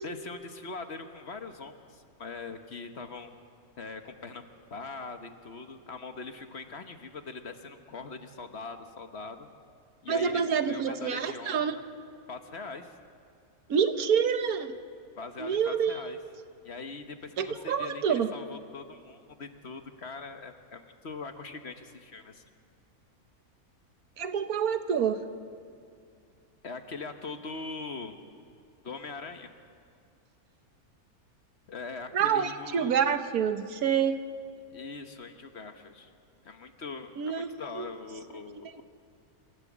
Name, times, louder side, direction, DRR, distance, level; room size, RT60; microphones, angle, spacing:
voice 1, 0.0-3.3 3.8-4.4 4.7-9.5 10.0-11.8 12.3-12.9 15.2-16.2 16.6-22.4 26.6-28.1 28.8-29.5 31.7-33.0 34.7-36.1 36.4-38.8, left 4 dB, 50° left, 7 dB, 1.3 m, -42 dB
voice 2, 10.1-11.7 13.7-14.8 15.4-16.0 17.4-18.3 24.2-25.2 32.1-34.2 37.2-37.5 37.7-37.9, right 7 dB, 80° right, 9 dB, 1.5 m, -27 dB
27.0 x 15.0 x 7.4 m, 2.4 s
omnidirectional pair, 1.6 m